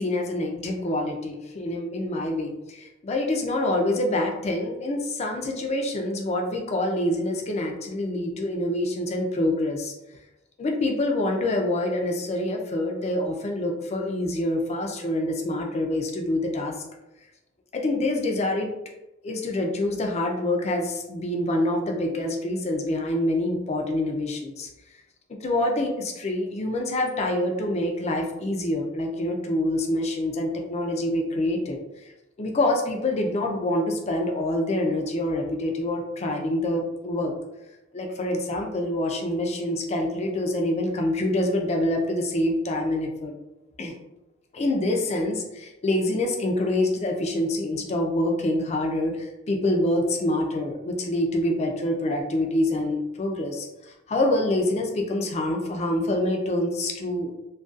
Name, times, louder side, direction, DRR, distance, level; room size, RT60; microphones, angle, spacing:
voice 1, 0.0-9.9 10.6-16.7 17.7-18.7 19.2-24.7 25.4-31.8 32.4-37.3 37.9-43.4 43.8-43.9 44.5-53.7 54.1-57.3, left 1 dB, 35° left, 2 dB, 0.4 m, -26 dB
2.4 x 2.2 x 2.5 m, 0.95 s
head